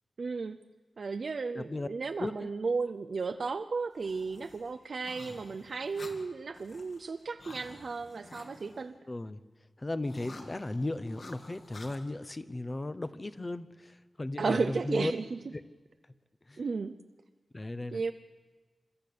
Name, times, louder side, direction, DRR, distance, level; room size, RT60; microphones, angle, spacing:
voice 1, 0.2-0.6 1.0-9.0 14.4-15.4 16.6-17.0 17.9-18.1, right 4 dB, 55° right, 9 dB, 0.6 m, -34 dB
voice 2, 1.5-1.9 2.2-2.5 9.1-9.4 9.8-15.1 16.5-16.6 17.5-18.0, left 2 dB, 25° left, 14 dB, 0.8 m, -36 dB
sound 1, 3.9-8.9 10.0-12.0, left 2 dB, 50° left, 2.2 m, -51 dB
27.5 x 13.5 x 8.6 m, 1.3 s
wide cardioid pair, 145°, 0 cm